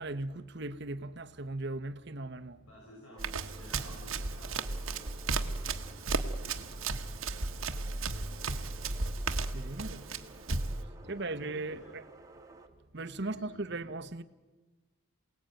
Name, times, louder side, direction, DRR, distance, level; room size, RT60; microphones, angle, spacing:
voice 1, 0.0-2.6 9.5-10.0 11.1-12.0 12.9-14.2, right 2 dB, 50° right, 1.0 m, -38 dB
voice 2, 2.6-6.8 7.4-8.7 9.6-10.2 11.0-11.9 13.2-13.8, equal, 80° left, 7.0 m, -55 dB
sound 1, 3.1-12.7, right 2 dB, 15° right, 1.5 m, -55 dB
Run, 3.2-10.8, right 3 dB, 70° right, 1.3 m, -35 dB
27.5 x 18.5 x 9.1 m
head